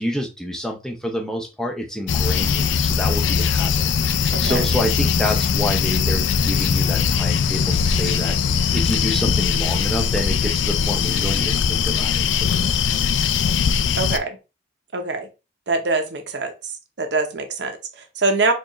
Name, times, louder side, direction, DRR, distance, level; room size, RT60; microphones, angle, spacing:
voice 1, 0.0-8.4 8.7-13.0, equal, 5° left, 1 dB, 0.5 m, -28 dB
sound 1, 2.1-14.2, left 6 dB, 80° left, 0.3 m, -20 dB
voice 2, 4.3-4.6 14.0-14.4 14.9-15.3 15.7-16.5 17.0-18.5, right 3 dB, 65° right, 6 dB, 0.7 m, -23 dB
4.6 x 2.4 x 3.0 m, 0.28 s
head